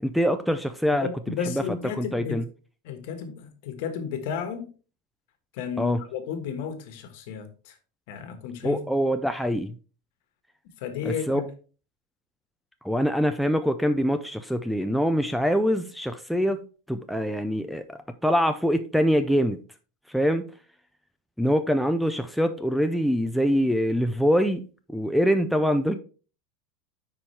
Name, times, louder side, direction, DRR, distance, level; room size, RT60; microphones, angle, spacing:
voice 1, 0.0-1.1 1.5-1.6 2.0-2.4 5.8-6.0 8.6-9.8 11.0-11.4 12.8-19.6 20.1-20.5 21.4-26.0, equal, ahead, 0.3 m, -24 dB
voice 2, 1.0-2.4 2.8-4.7 5.5-7.8 8.1-8.8 10.8-11.5, left 7 dB, 55° left, 1.3 m, -33 dB
9.8 x 4.4 x 3.2 m
supercardioid pair, 170°, 0 cm